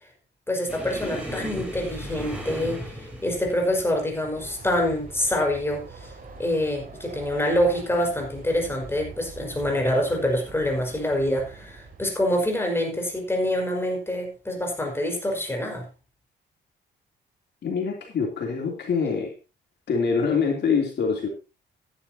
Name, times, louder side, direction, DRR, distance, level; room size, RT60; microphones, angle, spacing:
voice 1, 0.5-2.8 3.2-6.1 6.4-15.9, left 1 dB, 10° left, 2 dB, 5.2 m, -26 dB
sound 1, 0.7-7.9 8.2-8.6 8.9-9.1 9.9-10.5 11.5-11.6 13.0-13.2, equal, 5° right, 5.6 m, -38 dB
Train, 4.3-12.5, right 4 dB, 45° right, 4.2 m, -44 dB
voice 2, 17.6-19.3 19.9-21.3, left 5 dB, 60° left, 1 dB, 3.2 m, -25 dB
14.5 x 10.5 x 2.9 m, 0.28 s
cardioid pair, 90°, 20 cm